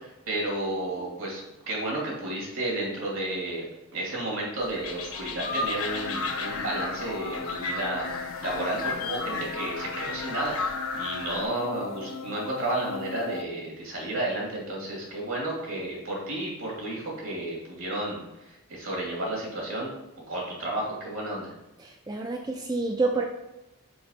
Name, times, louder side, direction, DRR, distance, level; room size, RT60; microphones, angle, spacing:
voice 1, 0.0-3.6 3.9-19.9 20.3-21.5, right 1 dB, 65° right, -3 dB, 2.7 m, -32 dB
sound 1, 4.6-11.4, left 3 dB, 80° left, 1.2 m, -33 dB
sound 2, 5.4-13.4, left 5 dB, 65° left, 0.5 m, -39 dB
voice 2, 21.8-23.2, right 3 dB, 20° right, 2 dB, 0.4 m, -28 dB
5.3 x 4.9 x 5.7 m, 0.96 s
head